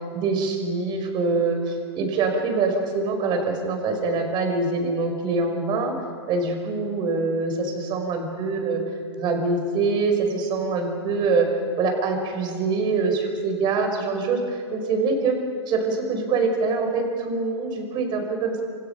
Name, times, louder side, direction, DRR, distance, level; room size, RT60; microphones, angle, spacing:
voice 1, 0.1-5.9 6.3-8.8 9.2-11.5 11.8-15.4 15.7-18.6, right 4 dB, 30° right, 4 dB, 5.2 m, -24 dB
27.5 x 27.0 x 5.8 m, 2.3 s
hypercardioid pair, 130°, 14 cm